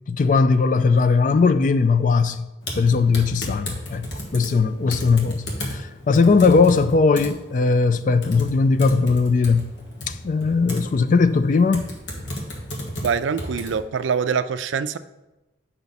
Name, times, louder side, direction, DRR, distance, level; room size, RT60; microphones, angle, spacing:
voice 1, 0.1-2.5 2.8-4.1 4.3-9.7 10.1-11.9, left 4 dB, 40° left, 0.3 m, -19 dB
Typing, 2.6-13.8, left 1 dB, 70° left, 1.4 m, -35 dB
voice 2, 13.0-15.0, right 6 dB, 80° right, 0.4 m, -24 dB
7.0 x 5.5 x 4.1 m
head